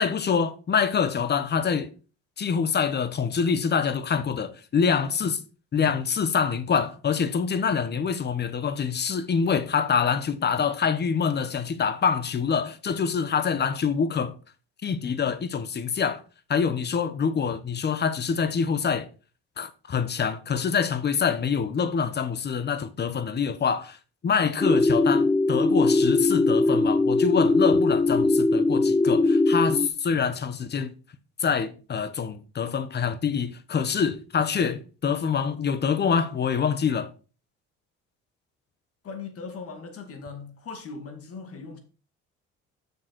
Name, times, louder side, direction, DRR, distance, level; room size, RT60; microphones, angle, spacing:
voice 1, 0.0-1.9 2.4-5.4 5.7-14.4 14.8-16.2 16.5-19.1 19.6-24.0 24.2-30.9 31.4-37.1, left 6 dB, 35° left, 1.1 m, -25 dB
sound 1, 24.6-29.9, left 2 dB, 10° left, 0.5 m, -21 dB
voice 2, 39.0-41.8, left 4 dB, 50° left, 2.4 m, -39 dB
6.7 x 6.6 x 4.7 m
cardioid pair, 105°, 29 cm